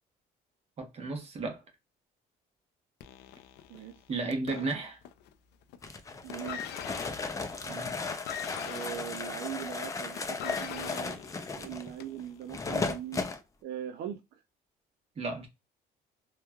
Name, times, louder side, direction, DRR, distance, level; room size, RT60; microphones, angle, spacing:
voice 1, 0.8-1.6 4.1-5.0 7.7-8.0 15.2-15.5, right 3 dB, 35° right, 1.0 m, -34 dB
sound 1, 3.0-5.3 5.6-6.0 6.3-12.3 13.1-13.2, left 10 dB, 80° left, 0.4 m, -43 dB
sound 2, 5.8-13.4, left 4 dB, 20° left, 0.4 m, -36 dB
voice 2, 6.2-6.8 8.6-11.2 11.5-13.2 13.6-14.2, right 10 dB, 70° right, 0.4 m, -40 dB
3.0 x 2.2 x 2.2 m
cardioid pair, 110°, 17 cm